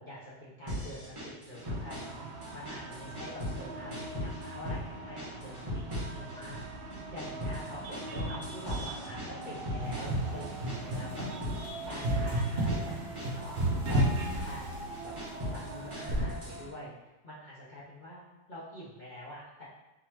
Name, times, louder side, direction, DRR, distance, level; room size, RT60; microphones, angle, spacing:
voice 1, 0.0-11.2 11.8-14.6 15.0-15.1 15.5-16.9 17.2-18.2 18.5-19.6, equal, 70° left, -9 dB, 0.4 m, -46 dB
sound 1, 0.7-2.2 2.4-3.6 3.9-4.8 5.2-6.6 6.9-11.6 11.9-12.9 13.2-14.5 14.9-16.6, equal, 20° right, 1.1 m, -38 dB
sound 2, 1.6-16.7, right 2 dB, 65° right, 1.2 m, -42 dB
sound 3, 9.8-15.1 16.1-16.4, right 1 dB, 50° right, 0.8 m, -31 dB
3.8 x 3.7 x 3.0 m, 1.0 s
omnidirectional pair, 2.1 m